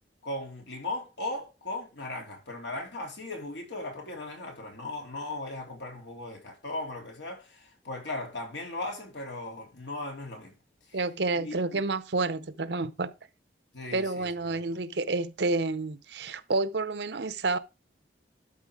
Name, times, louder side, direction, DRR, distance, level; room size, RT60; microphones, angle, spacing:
voice 1, 0.2-10.5 10.9-11.0 11.4-11.8 13.7-14.6, left 2 dB, 80° left, 3.3 m, -37 dB
voice 2, 10.9-13.1 13.9-17.6, right 3 dB, 70° right, 0.8 m, -29 dB
12.5 x 4.3 x 4.9 m
head